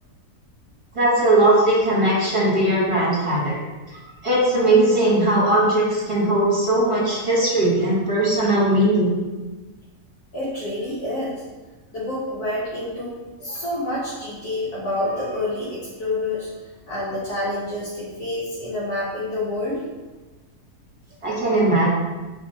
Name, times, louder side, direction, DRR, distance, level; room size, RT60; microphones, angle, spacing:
voice 1, 0.9-3.6 4.2-9.2 21.2-21.9, right 1 dB, 20° right, -6 dB, 1.2 m, -19 dB
voice 2, 10.3-11.4 11.9-16.5 16.9-19.8, left 1 dB, 80° left, -9 dB, 1.6 m, -28 dB
3.8 x 3.1 x 4.2 m, 1.2 s
omnidirectional pair, 1.6 m